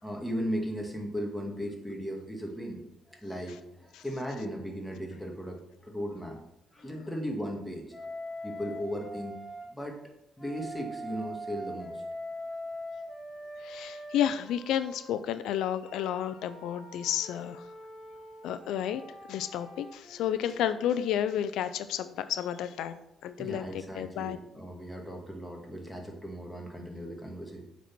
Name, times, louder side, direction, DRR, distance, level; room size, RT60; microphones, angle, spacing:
voice 1, 0.0-6.4 6.7-8.1 8.4-9.4 9.7-10.0 10.4-12.0 23.4-27.6, equal, 5° left, 0 dB, 2.0 m, -37 dB
Wind instrument woodwind instrument, 7.9-9.7 10.4-15.1 15.8-21.1, equal, 25° left, 2.4 m, -43 dB
voice 2, 13.6-17.7 18.4-19.0 19.3-23.0 23.2-24.4, left 10 dB, 85° left, 12 dB, 0.4 m, -31 dB
7.2 x 4.1 x 6.0 m, 0.83 s
cardioid pair, 90°, 0 cm